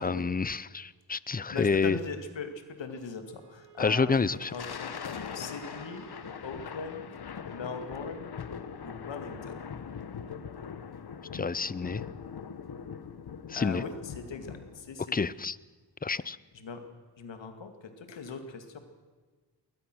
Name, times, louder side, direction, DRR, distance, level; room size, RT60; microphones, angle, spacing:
voice 1, 0.0-2.0 3.8-4.5 11.3-12.0 13.5-13.8 15.1-15.6 16.0-16.4, left 4 dB, 20° left, 20 dB, 0.6 m, -28 dB
voice 2, 1.5-4.9 5.3-6.1 6.4-7.1 7.5-8.3 8.8-9.6 13.5-15.3 16.5-16.8 17.2-18.8, left 4 dB, 80° left, 7 dB, 2.4 m, -40 dB
Wind instrument woodwind instrument, 3.2-6.5, right 2 dB, 75° right, 3.3 m, -54 dB
Thunder, 4.3-14.9, left 6 dB, 60° left, 1.4 m, -41 dB
21.5 x 19.5 x 6.3 m, 1.4 s
cardioid pair, 60°, 43 cm